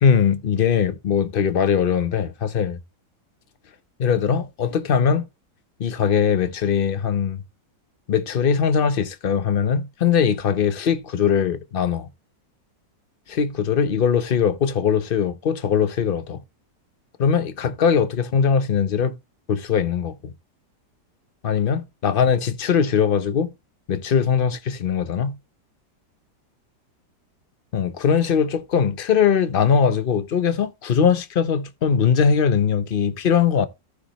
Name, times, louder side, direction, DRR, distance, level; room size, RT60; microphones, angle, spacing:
voice 1, 0.0-2.8 4.0-5.3 5.8-7.4 8.1-12.1 13.3-16.4 17.2-19.1 19.5-20.3 21.4-23.5 23.9-25.4 27.7-33.7, left 7 dB, 60° left, 0.5 m, -21 dB
14.5 x 5.0 x 3.0 m
omnidirectional pair, 1.9 m